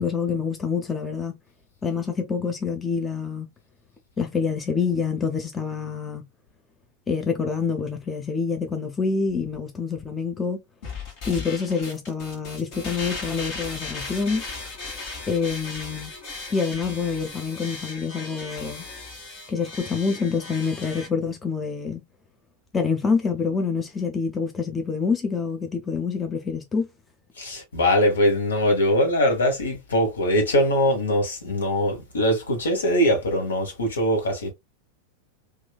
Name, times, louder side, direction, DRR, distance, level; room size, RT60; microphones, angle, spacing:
voice 1, 0.0-1.4 1.8-3.5 4.2-6.2 7.1-10.6 11.2-14.4 15.3-16.1 16.5-18.9 19.5-22.0 22.7-26.9, left 5 dB, 15° left, 0.5 m, -26 dB
sound 1, 10.8-21.1, left 3 dB, 45° left, 1.3 m, -37 dB
voice 2, 27.4-34.5, equal, 70° left, 1.1 m, -22 dB
3.0 x 2.4 x 2.2 m
figure-of-eight pair, 90°, 0 cm